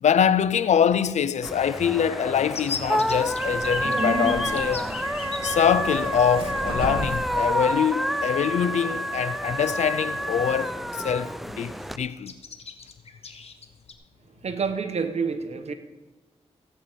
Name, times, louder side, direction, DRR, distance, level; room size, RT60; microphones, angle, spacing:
voice 1, 0.0-4.9 5.4-10.7 11.0-11.3 11.6-12.3, left 8 dB, 80° left, 0.5 m, -24 dB
sound 1, 1.4-12.0, equal, ahead, 0.6 m, -29 dB
sound 2, 2.5-5.5 6.5-6.6 6.9-7.1 8.7-8.8 9.3-9.6 10.0-10.7 11.0-11.2 11.4-11.9 12.3-13.9, left 5 dB, 60° left, 1.3 m, -37 dB
Subway metro underground, 3.2-7.4, right 2 dB, 50° right, 2.3 m, -33 dB
voice 2, 14.4-15.7, right 5 dB, 65° right, 1.2 m, -28 dB
15.5 x 8.8 x 5.2 m
cardioid pair, 65°, 12 cm